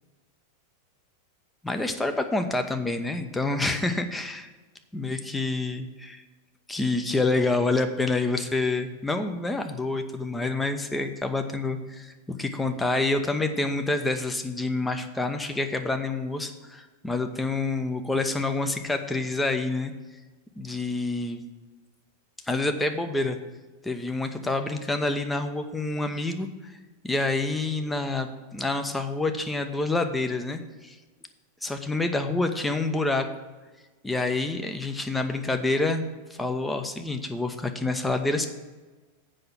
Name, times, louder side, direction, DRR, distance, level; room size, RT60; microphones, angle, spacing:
voice 1, 1.6-4.5 4.9-6.2 6.7-19.9 20.6-21.4 22.5-23.4 23.8-26.7 27.0-31.0 31.6-33.3 34.0-36.0 36.3-38.5, left 2 dB, 10° left, 6 dB, 0.8 m, -27 dB
7.7 x 5.8 x 7.5 m, 1.3 s
figure-of-eight pair, 90°, 0 cm